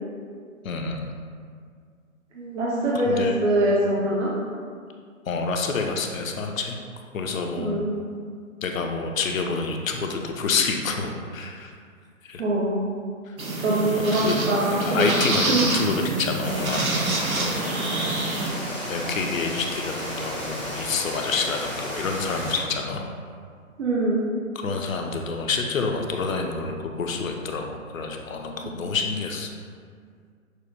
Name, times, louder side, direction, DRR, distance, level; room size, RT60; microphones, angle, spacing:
voice 1, 0.6-1.0 3.0-3.4 5.3-6.8 7.1-7.7 8.6-11.7 12.2-12.4 13.3-13.4 14.2-14.4 14.8-17.7 18.9-23.1 24.5-29.5, left 4 dB, 70° left, 3 dB, 0.6 m, -28 dB
voice 2, 2.3-4.3 7.6-7.9 12.4-13.0 13.6-15.1 15.5-15.6 23.8-24.2, right 1 dB, 55° right, -6 dB, 0.7 m, -23 dB
sound 1, 13.4-18.5, right 2 dB, 85° right, 1.0 m, -27 dB
sound 2, 16.4-22.6, equal, 5° right, 0.4 m, -33 dB
6.3 x 2.2 x 2.6 m, 2.1 s
figure-of-eight pair, 140°, 41 cm